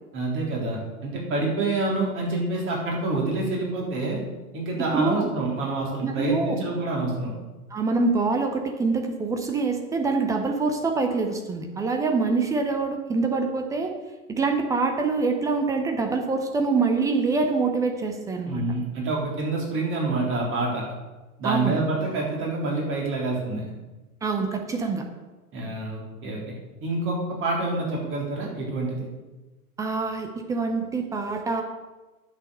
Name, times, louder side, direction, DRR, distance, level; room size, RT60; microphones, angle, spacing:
voice 1, 0.1-4.2 4.5-7.3 18.5-20.8 21.4-23.6 25.5-26.4 26.8-29.1, right 2 dB, 25° right, -2 dB, 3.5 m, -27 dB
voice 2, 4.9-5.3 6.0-6.6 7.7-13.9 14.3-18.6 21.4-21.8 24.2-25.0 29.8-31.6, right 4 dB, 10° right, 4 dB, 0.5 m, -25 dB
9.7 x 6.6 x 6.7 m, 1.2 s
figure-of-eight pair, 105°, 45 cm